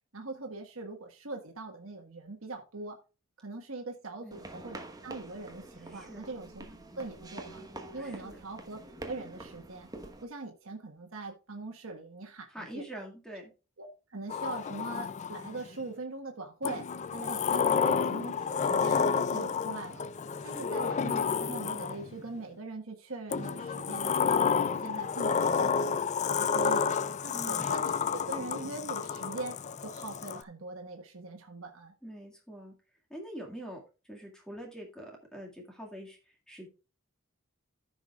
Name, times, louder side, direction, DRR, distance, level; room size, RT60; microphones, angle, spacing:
voice 1, 0.1-3.0 3.4-6.7 7.0-7.6 7.9-8.8 9.1-9.9 10.2-12.8 13.8-16.9 17.1-19.1 19.3-20.1 20.4-25.7 26.2-29.6 29.8-31.9, right 3 dB, 80° right, 2 dB, 1.5 m, -41 dB
sound 1, 4.3-10.2, right 2 dB, 20° right, 1.2 m, -46 dB
voice 2, 5.8-6.3 8.0-8.4 12.5-13.5 17.2-17.3 20.4-20.8 27.3-27.7 32.0-32.7 33.1-36.7, right 1 dB, 5° left, 0 dB, 2.0 m, -45 dB
Sliding door, 14.3-15.7 16.6-22.2 23.3-30.4, left 6 dB, 35° left, 0.4 m, -30 dB
14.5 x 6.1 x 2.4 m, 0.32 s
head